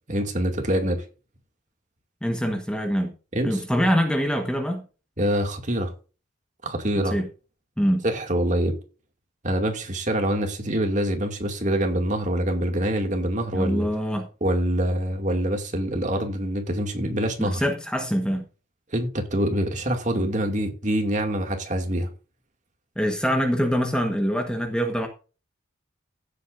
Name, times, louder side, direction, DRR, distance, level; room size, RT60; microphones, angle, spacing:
voice 1, 0.1-1.0 3.3-3.6 5.2-5.9 6.6-7.2 8.0-8.8 9.4-13.9 14.4-17.6 18.9-22.1, right 1 dB, 35° right, 2.4 m, -25 dB
voice 2, 2.2-3.1 3.4-4.8 7.1-7.3 7.8-8.0 13.5-14.3 17.0-18.4 23.0-25.1, equal, 5° left, 1.3 m, -24 dB
16.0 x 8.3 x 2.6 m
head